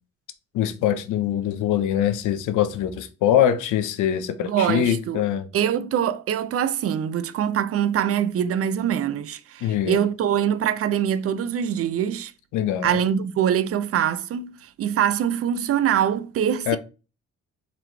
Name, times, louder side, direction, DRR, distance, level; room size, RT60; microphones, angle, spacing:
voice 1, 0.5-5.5 9.6-10.0 12.5-13.0 16.7-16.8, left 10 dB, 80° left, 0.6 m, -23 dB
voice 2, 4.4-5.2 5.5-12.3 12.8-16.8, right 9 dB, 50° right, 0.4 m, -24 dB
4.0 x 3.0 x 3.2 m
cardioid pair, 90°, 30 cm